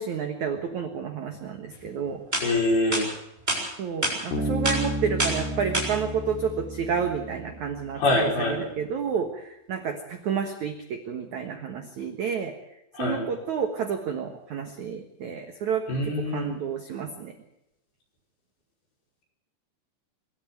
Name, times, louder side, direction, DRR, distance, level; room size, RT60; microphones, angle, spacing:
voice 1, 0.0-2.2 3.8-12.5 13.0-17.3, right 6 dB, 65° right, 6 dB, 1.9 m, -30 dB
sound 1, 1.8-1.9 2.3-2.5 2.9-3.0 3.5-3.6 4.0-4.2 4.6-4.8 5.2-5.4 5.7-5.9, right 1 dB, 10° right, 7.2 m, -25 dB
voice 2, 2.4-3.1 7.9-8.6 12.9-13.2 15.9-16.5, left 2 dB, 55° left, 0 dB, 6.9 m, -24 dB
Bass guitar, 4.3-7.8, equal, 85° left, 5.4 m, -32 dB
24.5 x 13.0 x 9.1 m, 0.85 s
omnidirectional pair, 5.4 m